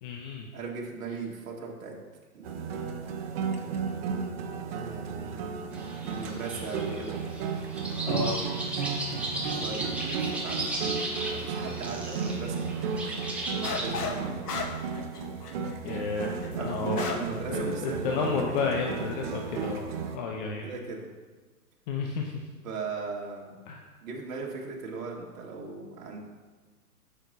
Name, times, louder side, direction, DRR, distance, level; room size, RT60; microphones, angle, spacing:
voice 1, 0.0-0.5 8.1-8.4 15.8-17.0 17.5-19.8 20.1-20.7 21.9-22.3 23.7-23.8, left 5 dB, 30° left, 1 dB, 0.6 m, -31 dB
voice 2, 0.5-2.0 2.3-2.8 4.7-5.5 6.0-7.2 9.5-12.7 13.5-14.5 15.8-16.1 16.4-18.6 20.6-21.1 22.6-23.6 24.0-26.2, right 4 dB, 60° right, -2 dB, 1.7 m, -39 dB
sound 1, 2.4-20.2, right 5 dB, 40° right, 0.8 m, -34 dB
sound 2, 5.7-13.8, right 2 dB, 5° right, 0.9 m, -36 dB
sound 3, 13.6-14.2 14.4-17.4 17.7-17.8 18.4-18.7, left 4 dB, 75° left, 1.2 m, -34 dB
9.0 x 6.6 x 2.7 m, 1.3 s
hypercardioid pair, 125°, 46 cm